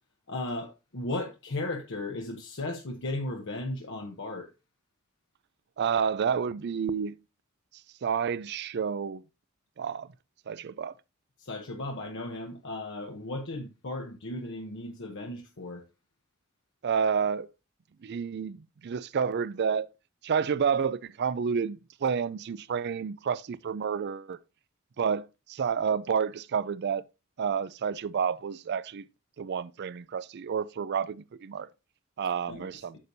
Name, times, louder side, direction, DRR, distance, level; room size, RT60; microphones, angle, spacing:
voice 1, 0.3-4.5 11.4-15.8 32.5-32.7, left 2 dB, 60° left, 0.8 m, -36 dB
voice 2, 5.8-7.1 8.0-9.2 9.8-10.1 10.5-10.9 16.8-17.5 18.0-19.9 20.2-24.4 25.0-27.0 27.4-29.0 29.4-31.7 32.2-33.0, right 6 dB, 50° right, 0.4 m, -29 dB
8.6 x 6.8 x 2.6 m
head